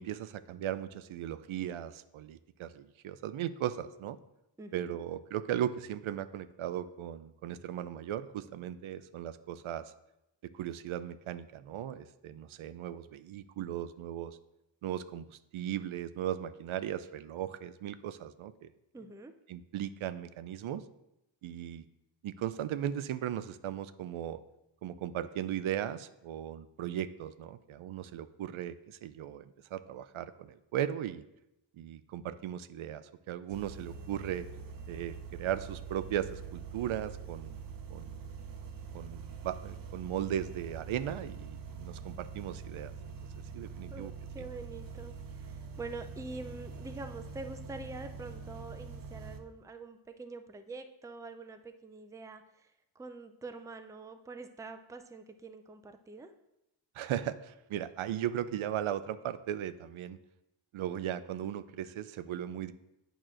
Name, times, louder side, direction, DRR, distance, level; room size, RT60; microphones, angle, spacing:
voice 1, 0.0-4.2 4.7-9.9 10.5-14.4 14.8-18.7 19.5-20.8 21.4-21.8 22.2-24.4 24.8-31.2 31.7-34.4 34.9-37.6 37.9-38.2 38.9-42.9 43.5-44.1 56.9-60.2 60.7-62.7, right 10 dB, 80° right, 13 dB, 0.6 m, -37 dB
voice 2, 4.6-5.0 18.9-19.3 43.9-56.3, right 3 dB, 5° right, 8 dB, 0.4 m, -45 dB
sound 1, 33.5-49.4, right 5 dB, 45° right, 0.7 m, -44 dB
8.8 x 3.0 x 6.2 m, 0.88 s
wide cardioid pair, 100°, 48 cm